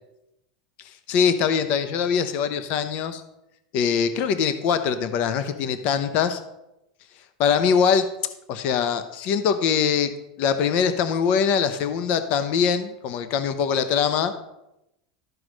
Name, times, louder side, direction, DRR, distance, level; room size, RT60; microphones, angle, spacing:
voice 1, 0.8-3.2 3.7-6.4 7.4-8.1 8.5-10.1 10.4-14.3, left 7 dB, 45° left, 10 dB, 0.7 m, -23 dB
13.0 x 4.7 x 6.3 m, 0.89 s
supercardioid pair, 150°, 3 cm